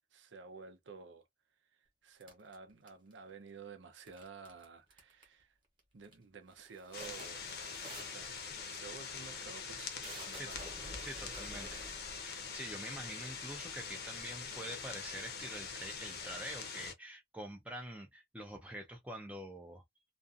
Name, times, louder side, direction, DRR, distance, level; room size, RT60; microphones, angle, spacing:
voice 1, 0.1-1.3 1.7-5.6 5.9-7.5 8.0-8.3 8.7-10.6 11.3-11.9, right 5 dB, 80° right, 0.6 m, -52 dB
sound 1, 2.2-3.3 4.1-4.6 4.9-5.4 5.8-6.2 6.5-13.6 14.2-14.3 14.6-16.2, right 1 dB, 25° right, 1.0 m, -52 dB
sound 2, 6.9-16.9, left 5 dB, 55° left, 0.7 m, -44 dB
voice 2, 11.0-11.8 12.1-19.8, right 1 dB, 10° right, 0.4 m, -46 dB
2.5 x 2.3 x 2.5 m
head